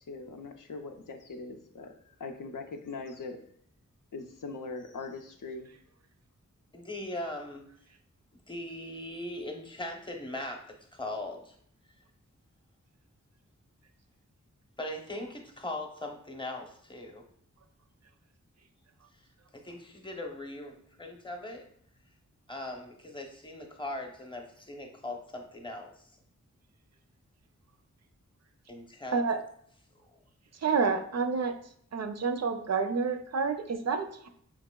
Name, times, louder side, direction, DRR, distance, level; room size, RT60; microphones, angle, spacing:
voice 1, 0.1-3.4 4.1-5.7, left 3 dB, 90° left, 3 dB, 0.5 m, -41 dB
voice 2, 6.7-7.7 8.5-11.6 14.8-17.2 19.1-19.2 19.5-21.6 22.5-26.1 28.7-29.2, left 1 dB, 15° left, 2 dB, 0.7 m, -40 dB
voice 3, 30.6-31.5 31.9-34.3, right 5 dB, 60° right, 7 dB, 0.4 m, -29 dB
4.6 x 2.9 x 2.2 m, 0.66 s
wide cardioid pair, 55°, 31 cm